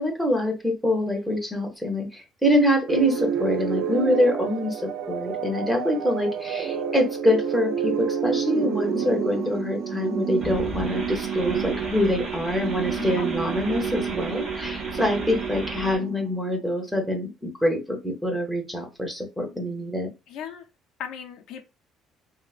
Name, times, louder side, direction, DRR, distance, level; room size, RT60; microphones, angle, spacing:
voice 1, 0.0-20.1, left 1 dB, ahead, 0.7 m, -25 dB
sound 1, 2.9-16.6, right 7 dB, 65° right, 0.3 m, -29 dB
sound 2, 10.4-16.0, right 1 dB, 30° right, 1.3 m, -36 dB
voice 2, 13.0-13.4 20.3-20.6 21.0-21.6, left 8 dB, 70° left, 0.5 m, -36 dB
3.1 x 2.0 x 2.3 m
cardioid pair, 145°, 0 cm